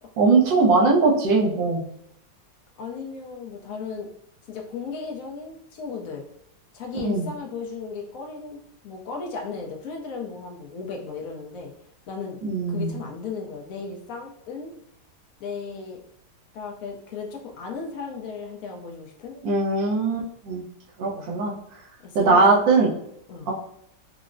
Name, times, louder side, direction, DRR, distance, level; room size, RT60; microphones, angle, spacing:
voice 1, 0.2-1.8 7.0-7.3 12.4-13.0 19.4-20.6 21.0-21.5 22.1-22.9 23.5-23.6, right 3 dB, 80° right, -5 dB, 1.5 m, -20 dB
voice 2, 2.8-4.1 4.5-6.3 6.7-11.7 12.1-12.4 12.7-14.7 15.4-16.0 16.5-19.4 21.1-21.3 22.0-23.0 23.3-23.5, left 5 dB, 65° left, 1 dB, 0.9 m, -35 dB
4.6 x 2.1 x 2.5 m, 0.72 s
omnidirectional pair, 1.9 m